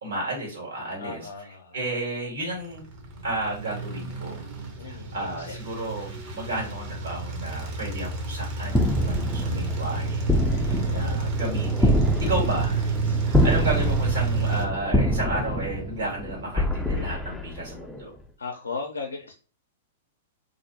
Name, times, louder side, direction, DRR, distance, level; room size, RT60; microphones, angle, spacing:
voice 1, 0.0-1.2 1.7-2.8 3.2-4.4 4.8-10.3 10.5-12.8 13.2-18.1, right 2 dB, 75° right, -2 dB, 1.4 m, -32 dB
voice 2, 1.0-1.8 4.8-5.6 10.7-11.4 12.1-12.5 13.0-13.5 18.4-19.3, left 4 dB, 90° left, 2 dB, 0.4 m, -38 dB
sound 1, 2.7-14.7, right 4 dB, 45° right, 0.7 m, -29 dB
sound 2, 8.7-18.0, left 1 dB, 5° left, 0.3 m, -26 dB
2.4 x 2.0 x 2.7 m, 0.36 s
hypercardioid pair, 115°, 0 cm